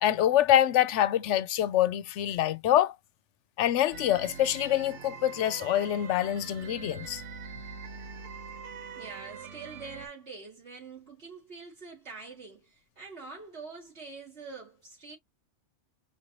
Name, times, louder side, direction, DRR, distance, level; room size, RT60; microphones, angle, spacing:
voice 1, 0.0-3.0 3.6-7.2, left 12 dB, 75° left, 0.9 m, -25 dB
sound 1, 3.9-10.1, right 6 dB, 80° right, 1.2 m, -43 dB
voice 2, 8.9-15.2, right 4 dB, 65° right, 2.8 m, -45 dB
5.6 x 2.7 x 3.0 m
omnidirectional pair, 1.2 m